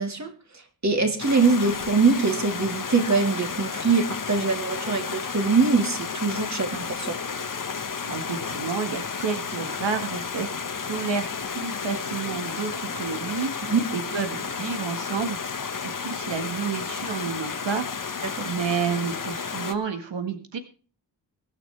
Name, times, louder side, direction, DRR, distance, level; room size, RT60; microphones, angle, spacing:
voice 1, 0.0-7.2 13.7-13.9 18.2-18.5, right 4 dB, 40° right, 3.0 m, -23 dB
Stream, 1.2-19.7, left 5 dB, 50° left, 1.3 m, -32 dB
voice 2, 8.1-10.5 10.9-13.5 13.9-15.4 15.7-18.2 18.4-20.6, right 6 dB, 90° right, 1.7 m, -30 dB
23.5 x 8.9 x 3.3 m
wide cardioid pair, 90°, 42 cm